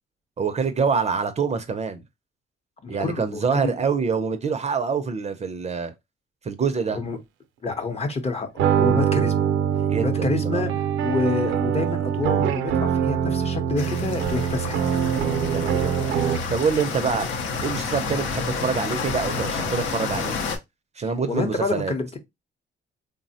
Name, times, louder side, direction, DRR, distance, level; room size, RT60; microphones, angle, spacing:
voice 1, 0.4-2.0 2.9-5.9 6.4-7.0 9.8-10.7 15.5-16.2 16.5-17.3 17.6-20.4 21.0-21.9, right 5 dB, 35° right, 0.5 m, -26 dB
voice 2, 2.8-3.8 6.9-7.2 7.6-8.5 8.8-9.5 10.0-10.7 11.0-14.8 21.3-22.2, left 3 dB, 30° left, 0.7 m, -27 dB
sound 1, 8.6-16.6, right 8 dB, 85° right, 0.5 m, -23 dB
sound 2, 13.8-20.6, left 4 dB, 75° left, 0.7 m, -29 dB
3.3 x 2.0 x 2.7 m
cardioid pair, 90°, 20 cm